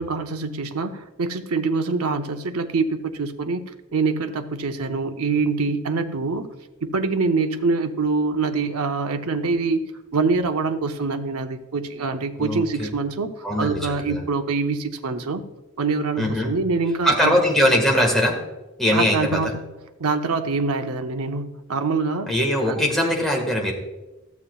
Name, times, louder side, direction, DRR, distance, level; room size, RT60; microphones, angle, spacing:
voice 1, 0.0-3.6 3.9-6.5 6.8-9.8 10.1-15.4 15.8-17.3 18.9-19.6 20.0-22.3 22.7-22.9, right 4 dB, 80° right, 7 dB, 0.7 m, -24 dB
voice 2, 12.4-12.9 13.4-14.2 16.2-16.5 17.0-18.4 18.8-19.5 22.3-23.7, equal, ahead, -1 dB, 1.6 m, -21 dB
14.0 x 7.1 x 2.4 m, 1.1 s
head